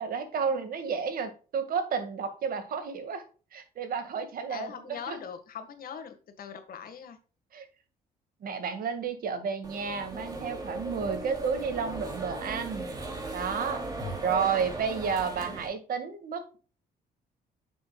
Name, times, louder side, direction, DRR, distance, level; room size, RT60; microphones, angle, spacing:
voice 1, 0.0-3.2 3.5-5.2 7.5-7.7 8.4-12.9 13.3-13.8 14.2-16.6, right 6 dB, 65° right, 8 dB, 2.0 m, -31 dB
voice 2, 4.5-7.2, left 7 dB, 65° left, 8 dB, 1.7 m, -41 dB
sound 1, 9.6-15.7, right 2 dB, 25° right, 2.8 m, -37 dB
9.0 x 6.8 x 2.3 m, 0.37 s
cardioid pair, 90°, 16 cm